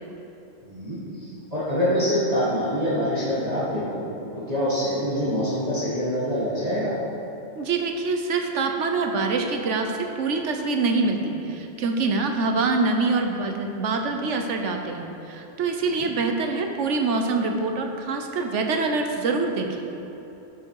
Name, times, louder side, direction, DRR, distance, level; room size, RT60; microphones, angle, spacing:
voice 1, 0.6-4.1 4.3-7.0 15.9-16.1, equal, 30° right, -9 dB, 1.8 m, -25 dB
voice 2, 7.5-19.8, right 3 dB, 70° right, 4 dB, 1.2 m, -25 dB
12.0 x 7.2 x 4.8 m, 3.0 s
omnidirectional pair, 1.3 m